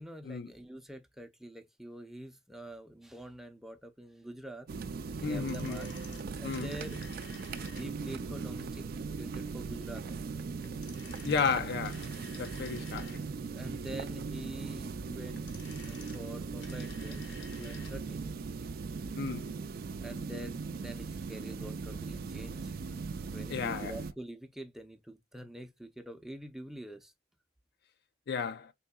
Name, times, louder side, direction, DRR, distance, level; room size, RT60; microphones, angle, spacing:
voice 1, 0.0-4.7 5.2-5.9 6.4-7.0 7.7-8.9 9.2-10.3 13.5-15.5 15.9-18.3 20.0-22.7 23.3-27.1, right 1 dB, ahead, 0.5 m, -46 dB
sound 1, 4.7-24.1, right 4 dB, 55° right, 0.4 m, -39 dB
voice 2, 5.2-5.8 6.4-6.7 11.2-12.1 12.4-13.2 19.2-19.5 23.5-23.9 28.3-28.7, left 5 dB, 65° left, 0.4 m, -33 dB
sound 2, 5.3-8.2 10.6-13.5 15.2-18.0 18.3-18.4, left 4 dB, 85° left, 1.1 m, -52 dB
3.7 x 3.6 x 2.2 m
head